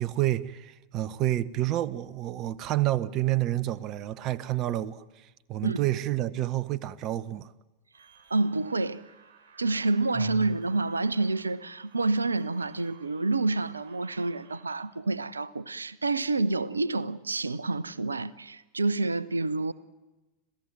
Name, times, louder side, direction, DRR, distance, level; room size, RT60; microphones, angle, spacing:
voice 1, 0.0-5.0 5.5-7.5 10.2-10.5, right 14 dB, 35° right, 0.9 m, -29 dB
sound 1, 7.9-14.8, right 6 dB, 55° right, 4.7 m, -57 dB
voice 2, 8.3-9.0 9.6-19.7, right 3 dB, 75° right, 0.7 m, -28 dB
26.5 x 17.0 x 9.2 m
figure-of-eight pair, 90°, 0 cm